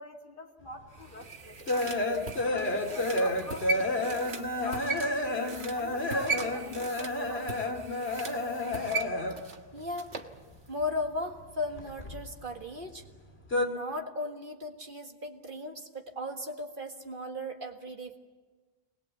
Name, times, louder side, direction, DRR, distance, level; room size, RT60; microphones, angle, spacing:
voice 1, 0.0-1.9 2.5-5.3 5.8-7.8, left 1 dB, 55° left, 2 dB, 2.4 m, -45 dB
sound 1, 0.8-9.6 9.8-11.0 11.3-12.7 13.0-13.7, left 2 dB, 70° left, 2.6 m, -31 dB
sound 2, 0.9-10.3 10.7-10.8, right 3 dB, 75° right, 1.8 m, -38 dB
voice 2, 9.7-10.1 10.7-13.0 13.5-18.2, left 2 dB, 50° right, 3 dB, 1.9 m, -36 dB
24.0 x 20.0 x 8.4 m, 1.3 s
omnidirectional pair, 1.1 m